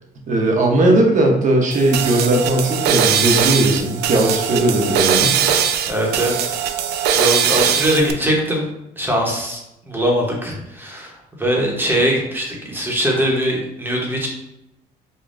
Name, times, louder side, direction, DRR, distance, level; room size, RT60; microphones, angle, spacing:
voice 1, 0.3-5.3, right 1 dB, 50° right, 1 dB, 1.0 m, -17 dB
sound 1, 1.7-8.1, right 8 dB, 75° right, 0.4 m, -20 dB
voice 2, 5.9-6.6 7.1-8.7 9.0-9.6 9.9-11.1 11.4-14.3, equal, 10° right, -1 dB, 1.0 m, -21 dB
5.2 x 2.3 x 2.5 m, 0.87 s
cardioid pair, 110°, 17 cm